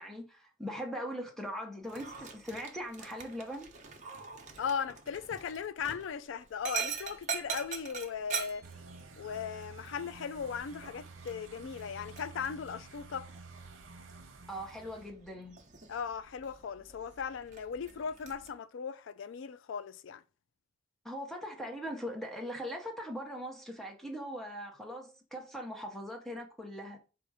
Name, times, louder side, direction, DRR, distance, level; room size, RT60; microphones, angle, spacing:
voice 1, 0.0-3.7 14.5-15.6 21.0-27.0, equal, ahead, 0.8 m, -40 dB
Dog, 1.8-18.5, right 6 dB, 40° right, 0.8 m, -44 dB
voice 2, 4.6-8.6 9.2-13.3 15.9-20.2, left 6 dB, 70° left, 0.4 m, -38 dB
sound 1, 8.6-15.1, right 3 dB, 85° right, 0.7 m, -51 dB
4.2 x 2.5 x 4.7 m
head